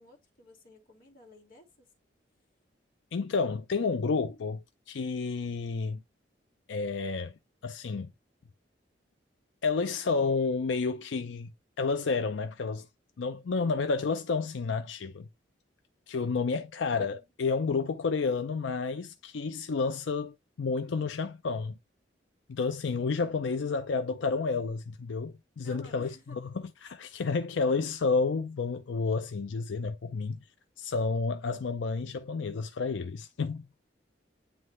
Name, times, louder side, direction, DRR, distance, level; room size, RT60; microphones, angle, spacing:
voice 1, 0.0-1.9 17.0-17.3 25.6-26.4, left 1 dB, 50° left, 2.1 m, -53 dB
voice 2, 3.1-6.0 6.7-7.3 7.6-8.1 9.6-11.5 11.8-12.9 13.2-15.3 16.1-21.8 22.5-26.4 26.8-30.4 30.8-33.7, left 4 dB, 85° left, 0.5 m, -30 dB
9.2 x 3.2 x 3.2 m
head